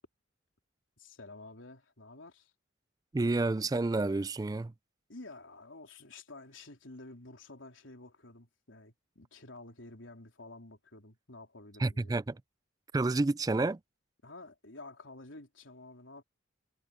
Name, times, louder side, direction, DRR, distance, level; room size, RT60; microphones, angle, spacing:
voice 1, 1.0-2.5 5.1-12.2 14.2-16.2, left 2 dB, 85° left, 3.8 m, -50 dB
voice 2, 3.1-4.7 11.8-12.4 12.9-13.8, right 2 dB, 20° right, 0.3 m, -29 dB
head